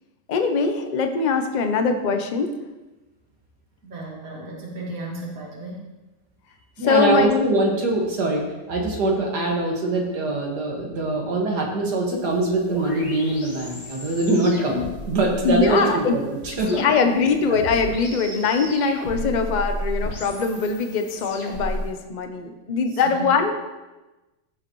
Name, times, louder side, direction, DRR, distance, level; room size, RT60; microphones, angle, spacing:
voice 1, 0.3-2.5 6.8-7.5 15.4-16.2 16.5-23.6, left 5 dB, 45° left, 6 dB, 0.6 m, -22 dB
voice 2, 3.8-5.9 14.4-14.6 17.2-17.3 19.2-19.4 23.0-23.3, right 1 dB, 50° right, -3 dB, 2.4 m, -34 dB
voice 3, 6.8-16.8 17.5-17.6, right 2 dB, 65° right, -1 dB, 2.3 m, -23 dB
sound 1, 12.1-21.8, left 1 dB, 80° left, 3.3 m, -34 dB
14.5 x 6.9 x 3.2 m, 1.1 s
omnidirectional pair, 1.9 m